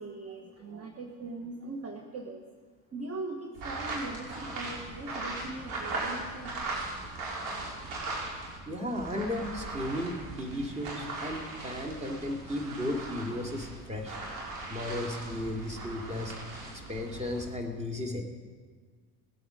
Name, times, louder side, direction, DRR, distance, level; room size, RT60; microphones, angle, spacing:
voice 1, 0.0-2.4 2.9-6.5 6.9-7.0, right 2 dB, 30° right, 3 dB, 1.4 m, -40 dB
sound 1, 3.5-8.6 8.9-17.4, right 2 dB, 75° right, 5.0 m, -39 dB
voice 2, 8.6-14.2 14.7-16.3 16.7-18.2, left 1 dB, 15° right, 2 dB, 2.6 m, -35 dB
20.5 x 8.6 x 5.2 m, 1.5 s
hypercardioid pair, 80°, 48 cm